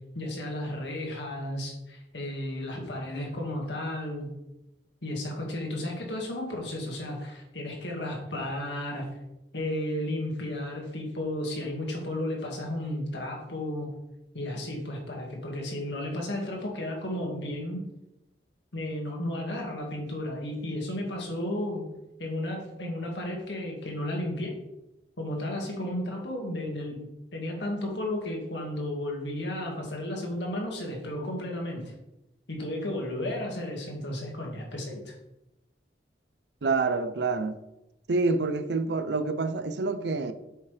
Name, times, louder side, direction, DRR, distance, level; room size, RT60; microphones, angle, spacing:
voice 1, 0.1-4.3 5.0-9.1 9.5-13.9 14.3-17.8 18.7-21.8 22.2-24.6 25.2-31.8 32.5-35.1, left 1 dB, 80° left, 1.9 m, -33 dB
voice 2, 36.6-37.6 38.1-40.3, right 3 dB, 70° right, 0.6 m, -27 dB
8.3 x 5.7 x 3.4 m
head